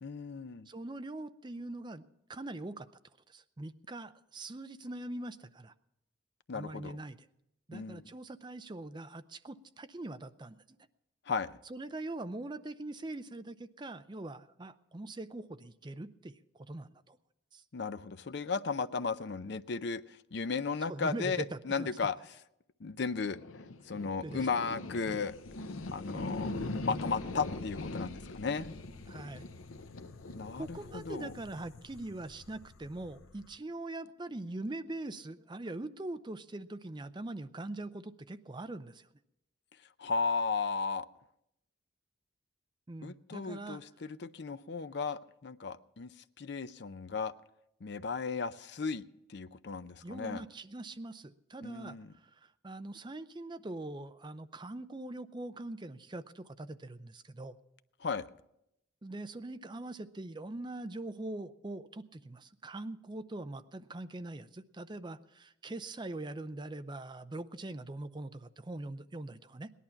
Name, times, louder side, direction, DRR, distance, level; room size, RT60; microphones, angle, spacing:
voice 1, 0.0-0.7 6.5-7.0 7.7-8.0 11.3-11.5 17.7-20.0 20.3-22.2 22.8-23.4 23.9-25.4 25.9-28.7 30.3-31.3 40.0-41.1 43.0-46.1 46.4-47.3 47.8-49.0 49.3-50.4 51.6-52.1 58.0-58.3, left 5 dB, 55° left, 14 dB, 0.5 m, -35 dB
voice 2, 0.7-2.9 3.3-5.7 6.5-7.3 7.7-10.6 11.7-17.2 17.5-17.6 20.8-21.9 24.2-24.5 26.1-26.5 29.1-29.5 30.6-39.1 42.9-43.8 50.0-52.0 52.2-57.6 59.0-69.7, right 2 dB, 20° right, 11 dB, 0.5 m, -42 dB
sound 1, 23.1-33.5, left 2 dB, 85° left, 0.8 m, -42 dB
18.0 x 11.0 x 5.7 m, 0.84 s
head